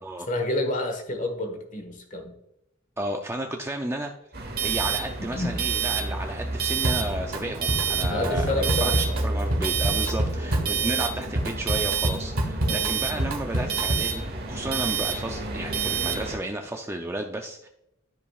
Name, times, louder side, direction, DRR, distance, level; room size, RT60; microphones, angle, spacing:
voice 1, 0.3-2.3 5.2-5.6 6.8-6.9 8.1-9.2 12.6-12.9, left 2 dB, 40° left, 4 dB, 1.4 m, -29 dB
voice 2, 3.0-4.1 4.4-17.7, right 1 dB, 10° right, 3 dB, 0.4 m, -33 dB
sound 1, 4.3-16.4, right 5 dB, 50° right, 1.2 m, -28 dB
Drum kit, 6.8-7.4 7.7-14.2, right 1 dB, 85° right, 1.6 m, -28 dB
12.5 x 5.0 x 2.4 m, 0.84 s
head